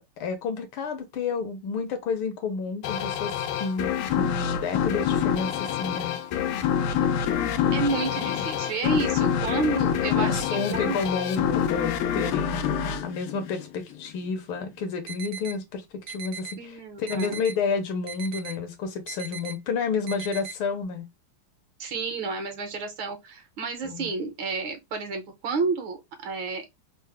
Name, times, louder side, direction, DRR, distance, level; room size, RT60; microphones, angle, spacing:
voice 1, 0.0-6.2 8.1-8.5 8.8-9.3 10.2-12.7 13.0-21.1 23.8-24.1, left 5 dB, 75° left, 1.6 m, -30 dB
sound 1, 2.8-14.1, left 9 dB, 90° left, 1.5 m, -26 dB
voice 2, 7.7-11.0 16.6-17.4 21.8-26.6, right 4 dB, 70° right, 1.7 m, -30 dB
sound 2, 15.1-15.6 16.1-16.6 17.1-17.6 18.1-18.6 19.1-19.5 20.1-20.5, right 6 dB, 90° right, 1.6 m, -38 dB
4.3 x 2.0 x 3.3 m
omnidirectional pair, 2.4 m